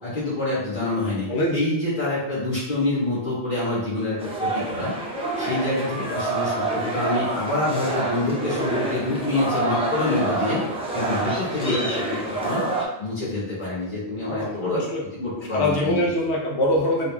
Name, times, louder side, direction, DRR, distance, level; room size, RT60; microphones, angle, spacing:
voice 1, 0.0-4.9 5.4-10.6 10.9-12.6 13.0-14.8 15.2-16.1, left 2 dB, 50° left, -11 dB, 1.4 m, -26 dB
sound 1, 4.2-12.9, right 2 dB, 10° right, 0.4 m, -27 dB
voice 2, 14.1-17.1, left 1 dB, 75° left, -2 dB, 1.0 m, -24 dB
3.9 x 2.8 x 2.3 m, 0.91 s
omnidirectional pair, 1.1 m